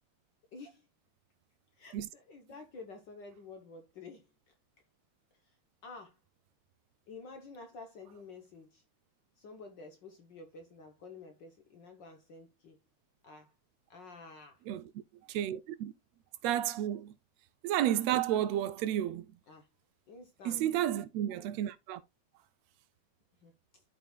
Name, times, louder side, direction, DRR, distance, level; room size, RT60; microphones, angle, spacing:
voice 1, 0.5-0.9 1.7-4.5 5.4-5.5 5.8-6.2 7.1-8.8 9.4-12.8 13.2-13.5 13.9-14.6 19.5-19.7 20.1-20.7 23.4-23.8, left 3 dB, 60° left, 1.2 m, -50 dB
voice 2, 15.3-15.9 16.4-17.1 17.6-19.3 20.4-22.0, right 12 dB, 80° right, 1.6 m, -31 dB
13.0 x 4.9 x 2.3 m
omnidirectional pair, 3.3 m